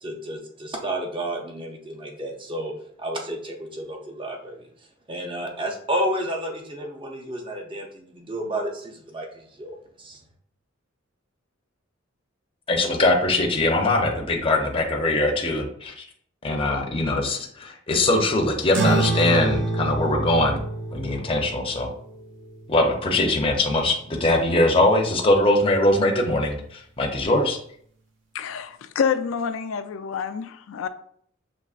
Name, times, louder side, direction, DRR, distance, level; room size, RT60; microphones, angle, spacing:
voice 1, 0.0-2.7 3.0-4.7 5.1-10.2, right 1 dB, 25° right, 2 dB, 0.6 m, -31 dB
voice 2, 12.7-16.0 16.4-20.6 20.9-21.9 22.7-27.6, left 2 dB, 25° left, 1 dB, 0.6 m, -22 dB
sound 1, 18.7-23.6, right 2 dB, 65° right, 0.9 m, -27 dB
voice 3, 28.3-30.9, left 6 dB, 70° left, 10 dB, 0.4 m, -27 dB
6.1 x 3.0 x 2.4 m, 0.63 s
head